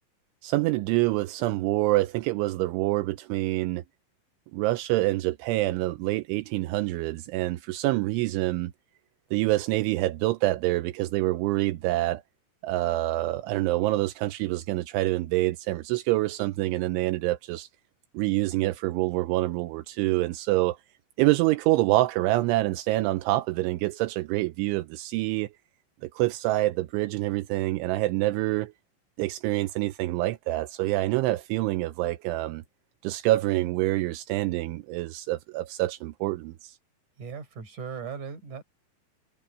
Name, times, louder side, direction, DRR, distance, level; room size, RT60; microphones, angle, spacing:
voice 1, 0.4-3.8 4.5-8.7 9.3-12.2 12.6-17.7 18.1-20.8 21.2-25.5 26.0-28.7 29.2-32.6 33.0-36.8, right 18 dB, 80° right, 3.0 m, -26 dB
voice 2, 37.2-38.6, right 6 dB, 40° right, 5.2 m, -38 dB
omnidirectional pair, 5.9 m